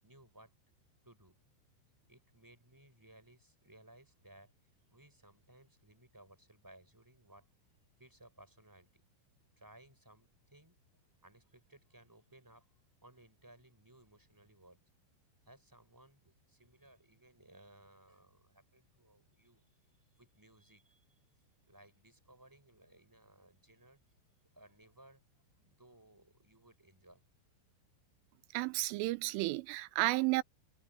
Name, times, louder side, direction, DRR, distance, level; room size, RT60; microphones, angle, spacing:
voice 1, 0.0-0.5 1.0-1.4 2.1-7.5 8.0-9.0 9.6-10.8 11.2-12.7 13.0-14.8 15.4-19.6 20.2-21.0 21.7-24.0 24.5-25.2 25.6-27.2, right 1 dB, 5° right, 7.0 m, -61 dB
voice 2, 28.5-30.4, right 20 dB, 85° right, 3.2 m, -32 dB
omnidirectional pair, 5.8 m